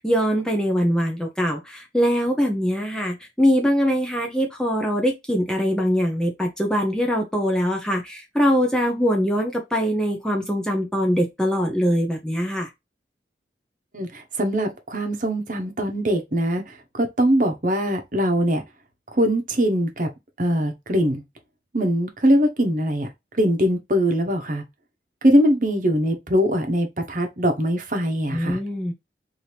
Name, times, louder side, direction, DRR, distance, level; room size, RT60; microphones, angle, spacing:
voice 1, 0.0-12.7 28.3-28.9, equal, 5° left, 0.6 m, -22 dB
voice 2, 13.9-18.6 19.1-20.1 20.4-21.2 21.7-23.1 23.4-24.6 25.2-28.6, equal, 45° right, 1.0 m, -22 dB
4.4 x 2.8 x 3.3 m
head